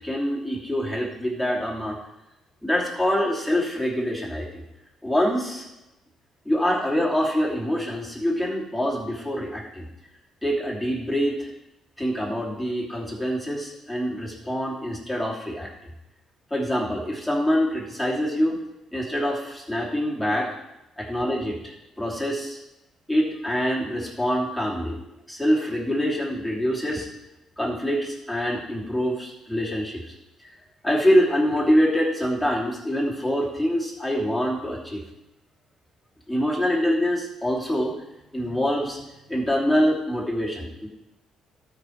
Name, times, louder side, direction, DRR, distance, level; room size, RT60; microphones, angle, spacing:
voice 1, 0.0-2.0 2.6-4.6 5.0-5.6 6.4-9.9 10.4-11.5 12.0-15.7 16.5-18.6 18.9-20.5 21.0-22.6 23.1-25.0 25.3-27.1 27.6-30.1 30.8-35.0 36.3-37.9 38.3-39.0 39.3-40.9, equal, ahead, -4 dB, 2.9 m, -25 dB
12.5 x 4.7 x 5.1 m, 0.91 s
cardioid pair, 95°, 0 cm